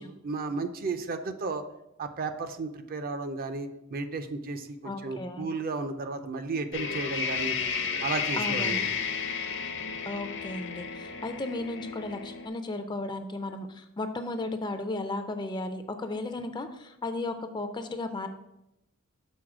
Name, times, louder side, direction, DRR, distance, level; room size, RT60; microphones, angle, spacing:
voice 1, 0.0-1.6 2.0-7.5 8.0-8.9, right 3 dB, 45° right, 9 dB, 0.4 m, -34 dB
voice 2, 4.8-5.5 8.3-8.9 10.1-18.3, left 2 dB, 20° left, 8 dB, 0.4 m, -35 dB
sound 1, 6.7-12.5, left 6 dB, 60° left, 0.7 m, -32 dB
6.3 x 3.9 x 4.8 m, 0.87 s
head